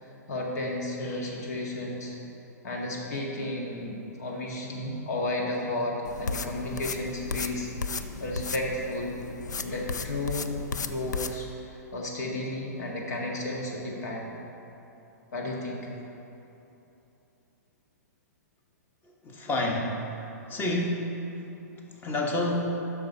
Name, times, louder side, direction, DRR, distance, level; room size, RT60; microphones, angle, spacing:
voice 1, 0.0-2.2 2.6-9.2 9.6-14.4 15.3-15.9, left 1 dB, 70° left, -1 dB, 1.7 m, -33 dB
sound 1, 6.0-11.4, left 4 dB, 90° left, 0.4 m, -35 dB
voice 2, 19.0-20.0 20.5-21.3 21.8-22.7, left 1 dB, 20° left, 1 dB, 1.1 m, -29 dB
7.6 x 5.9 x 5.5 m, 2.9 s
hypercardioid pair, 125°, 9 cm